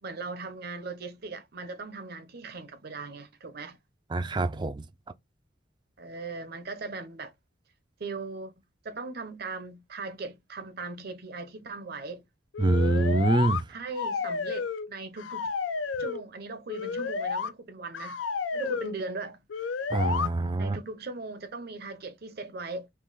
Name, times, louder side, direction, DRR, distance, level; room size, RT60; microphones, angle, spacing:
voice 1, 0.0-3.8 6.0-7.3 8.0-8.5 8.8-12.2 13.7-15.5 16.0-18.2 18.5-19.4 20.6-22.9, right 3 dB, 55° right, 0.7 m, -39 dB
voice 2, 4.1-4.8 12.6-13.6 19.9-20.8, right 2 dB, 25° right, 0.4 m, -25 dB
sound 1, 12.5-13.6 13.9-14.9 15.2-16.2 16.7-17.5 17.9-18.9 19.5-20.3, left 5 dB, 85° left, 0.6 m, -31 dB
3.7 x 2.8 x 4.0 m
head